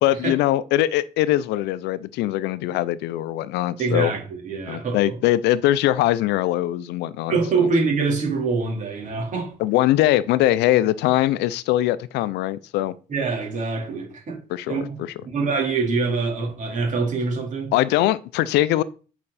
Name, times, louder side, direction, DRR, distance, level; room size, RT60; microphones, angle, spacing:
voice 1, 0.0-4.1 4.7-7.4 9.6-12.9 14.5-15.1 17.7-18.8, left 14 dB, 85° left, 0.6 m, -21 dB
voice 2, 3.8-5.2 7.3-9.5 13.1-14.4 14.7-15.0 15.3-17.7, right 4 dB, 50° right, 3.9 m, -24 dB
8.7 x 6.0 x 4.2 m
cardioid pair, 110°, 17 cm